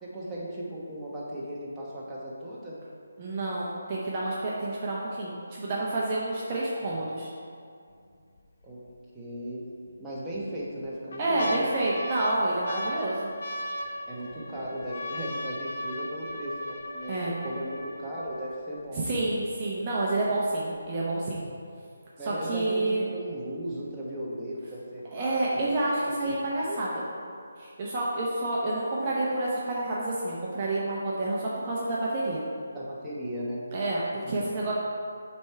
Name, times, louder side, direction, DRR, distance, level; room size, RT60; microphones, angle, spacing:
voice 1, 0.0-2.8 6.8-6.9 8.6-8.8 9.1-9.7 10.0-11.7 14.1-19.2 22.2-26.0 26.2-26.4 26.6-26.8 32.7-33.6 34.2-34.7, equal, 10° right, -9 dB, 1.0 m, -36 dB
voice 2, 3.2-7.3 11.2-13.3 17.1-17.3 19.0-21.4 22.2-23.0 25.1-27.0 27.6-32.4 33.7-34.7, right 2 dB, 30° right, -6 dB, 0.7 m, -29 dB
sound 1, 7.9-8.4 8.9-9.0 9.9-10.4 10.8-18.8 19.5-19.6 19.8-20.3 20.8-20.9, left 1 dB, 60° left, 0.6 m, -37 dB
6.7 x 3.4 x 4.5 m, 2.3 s
figure-of-eight pair, 160°, 0 cm